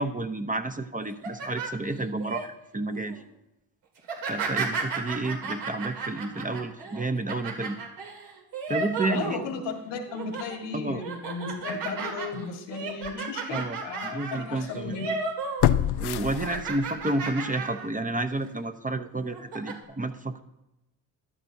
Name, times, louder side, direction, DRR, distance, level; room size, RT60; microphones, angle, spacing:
voice 1, 0.0-3.2 4.3-7.8 8.7-9.4 10.7-11.1 13.5-13.8 14.1-15.0 16.0-20.4, right 2 dB, 20° right, 6 dB, 0.8 m, -30 dB
sound 1, 1.0-2.4 2.9-3.2 4.0-9.7 10.1-10.6 11.0-15.7 16.0-17.9 18.3-18.5 19.2-19.7, right 4 dB, 80° right, 2.4 m, -34 dB
voice 2, 9.0-15.1, left 4 dB, 85° left, 4 dB, 1.8 m, -35 dB
sound 2, 12.3-12.4 13.0-13.1 15.6-17.0 17.4-17.5, left 12 dB, 65° left, 0.7 m, -26 dB
13.5 x 11.5 x 2.8 m, 0.91 s
supercardioid pair, 70°, 42 cm